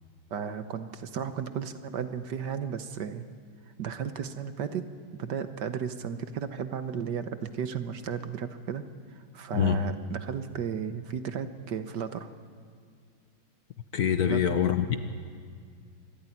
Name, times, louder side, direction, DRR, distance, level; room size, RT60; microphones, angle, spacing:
voice 1, 0.3-3.3 3.8-4.8 5.1-8.8 9.1-12.3 14.3-14.6, right 7 dB, 60° right, 10 dB, 1.5 m, -34 dB
voice 2, 13.9-15.0, left 9 dB, 55° left, 9 dB, 1.2 m, -25 dB
25.5 x 13.5 x 9.9 m, 2.1 s
omnidirectional pair, 2.2 m